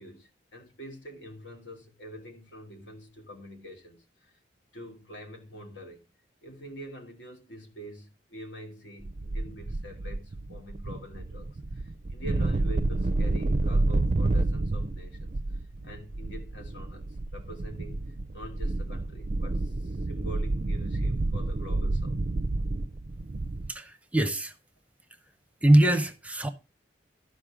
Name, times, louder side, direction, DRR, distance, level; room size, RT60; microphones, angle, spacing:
voice 1, 0.0-4.3 4.7-6.0 6.4-15.3 15.8-22.2, equal, 70° left, 2.7 m, -45 dB
sound 1, 9.0-23.7, right 2 dB, 40° right, 0.5 m, -29 dB
voice 2, 23.7-24.5 25.6-26.5, right 1 dB, 5° right, 0.7 m, -22 dB
13.0 x 5.4 x 5.0 m
head